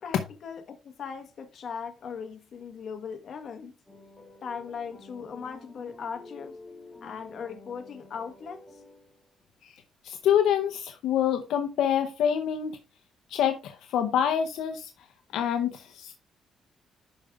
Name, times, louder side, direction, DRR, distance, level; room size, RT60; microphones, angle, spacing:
voice 1, 0.0-3.7 4.4-6.6 7.0-8.8, left 6 dB, 60° left, 1.2 m, -39 dB
sound 1, 3.9-9.3, left 2 dB, 15° left, 2.7 m, -49 dB
voice 2, 10.0-12.8 13.3-14.9 15.3-16.1, left 9 dB, 80° left, 0.6 m, -26 dB
11.0 x 5.0 x 2.3 m
cardioid pair, 90°, 0 cm